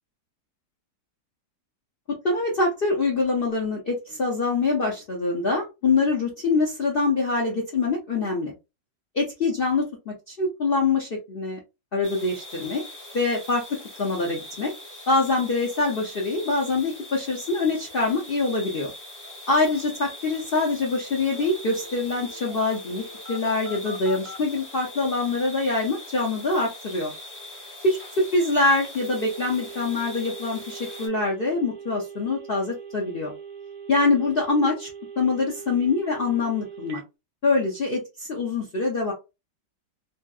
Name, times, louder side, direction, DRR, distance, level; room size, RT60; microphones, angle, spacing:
voice 1, 2.2-8.5 9.2-11.6 11.9-12.8 13.1-13.6 14.0-14.7 15.1-18.9 19.5-27.1 27.8-33.3 33.9-34.9 35.2-37.0 37.4-39.1, left 3 dB, 65° left, -2 dB, 0.5 m, -24 dB
sound 1, 12.0-31.1, left 1 dB, 15° left, 0.8 m, -42 dB
Telephone, 21.3-24.4 28.8-37.0, right 4 dB, 45° right, 0.6 m, -41 dB
3.0 x 2.7 x 2.3 m, 0.27 s
omnidirectional pair, 1.8 m